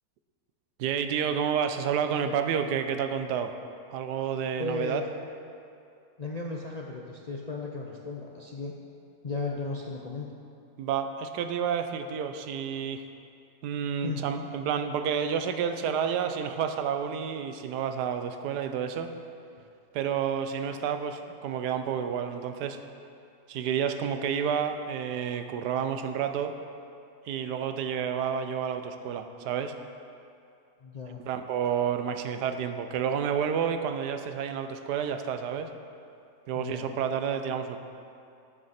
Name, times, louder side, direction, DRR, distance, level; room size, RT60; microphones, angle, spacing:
voice 1, 0.8-3.5 3.9-5.0 10.8-13.0 13.6-19.2 19.9-22.8 23.5-26.6 27.3-29.7 31.2-35.7 36.5-37.8, right 7 dB, 85° right, 8 dB, 1.2 m, -30 dB
voice 2, 4.6-5.0 6.2-8.7 9.2-10.3 14.0-14.5 30.8-31.2 36.5-36.9, left 3 dB, 50° left, -1 dB, 0.4 m, -35 dB
13.5 x 7.5 x 4.2 m, 2.6 s
omnidirectional pair, 1.7 m